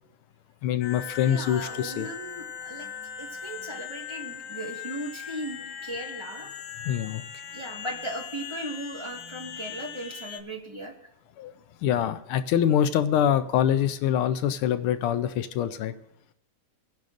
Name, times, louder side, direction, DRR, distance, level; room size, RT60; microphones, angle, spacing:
voice 1, 0.6-2.1 6.9-7.2 11.4-11.5 11.8-15.9, left 10 dB, 80° left, 11 dB, 1.4 m, -25 dB
sound 1, 0.8-10.4, left 8 dB, 65° left, 1.5 m, -39 dB
voice 2, 1.2-2.9 3.2-6.5 7.5-11.1, right 1 dB, 15° right, -1 dB, 1.3 m, -37 dB
24.0 x 10.5 x 2.5 m, 0.79 s
omnidirectional pair, 2.4 m